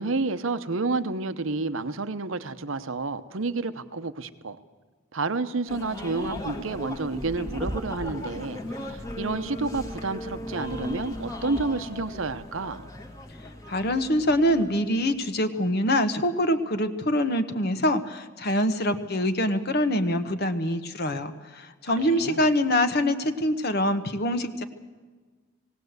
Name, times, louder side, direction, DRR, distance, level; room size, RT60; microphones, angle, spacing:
voice 1, 0.0-4.6 5.1-12.9 22.0-22.4, right 3 dB, 70° right, 12 dB, 0.9 m, -30 dB
sound 1, 5.7-15.4, left 1 dB, 15° left, 1.5 m, -37 dB
voice 2, 13.7-24.6, left 1 dB, 50° left, 10 dB, 1.1 m, -25 dB
19.0 x 18.0 x 8.0 m, 1.4 s
head